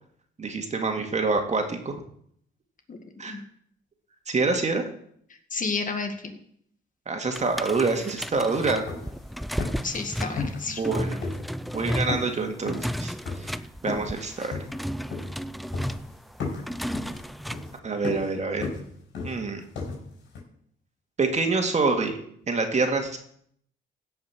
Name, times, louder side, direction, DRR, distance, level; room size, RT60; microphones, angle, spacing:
voice 1, 0.4-2.0 3.2-3.4 4.3-4.8 7.1-8.8 10.7-11.2 11.7-13.1 13.4-14.5 17.8-18.7 19.2-19.6 21.2-22.2 22.5-23.2, right 3 dB, 35° right, 4 dB, 2.1 m, -26 dB
voice 2, 2.9-3.4 5.5-6.4 9.8-10.8, left 4 dB, 40° left, 6 dB, 2.0 m, -31 dB
sound 1, 7.3-17.8, equal, ahead, 0.4 m, -33 dB
sound 2, 8.3-8.4 8.7-9.3 9.6-10.0 10.4-10.9 11.2-11.8 12.1-14.2 14.5-15.5 15.7-16.1 16.4-20.4, left 4 dB, 70° left, 5.0 m, -35 dB
16.0 x 5.7 x 6.0 m, 0.67 s
cardioid pair, 90°, 20 cm